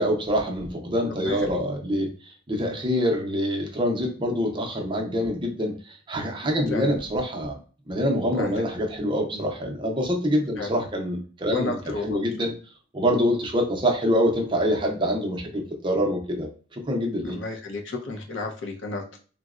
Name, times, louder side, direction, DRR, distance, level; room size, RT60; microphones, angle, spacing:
voice 1, 0.0-7.6 7.9-12.5 12.9-17.4, equal, 25° right, 1 dB, 0.5 m, -25 dB
voice 2, 1.1-1.6 6.7-6.9 8.4-8.6 10.6-10.8 11.5-12.2 17.3-19.2, left 3 dB, 70° left, 2 dB, 0.6 m, -32 dB
3.8 x 2.0 x 2.4 m, 0.39 s
head